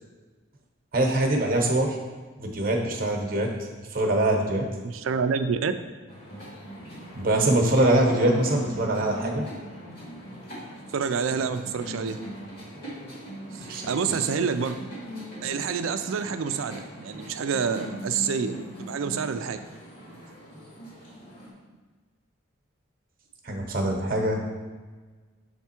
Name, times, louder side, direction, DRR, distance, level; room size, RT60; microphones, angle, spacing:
voice 1, 0.9-2.0 2.4-3.5 3.9-4.6 7.1-9.4 13.7-14.2 23.4-24.4, right 1 dB, 45° right, 2 dB, 0.9 m, -23 dB
voice 2, 4.8-5.7 10.9-12.2 13.5-14.8 15.4-19.6, right 6 dB, 85° right, 10 dB, 0.4 m, -28 dB
sound 1, 6.1-21.5, equal, 50° left, 2.0 m, -41 dB
7.2 x 3.5 x 4.3 m, 1.4 s
head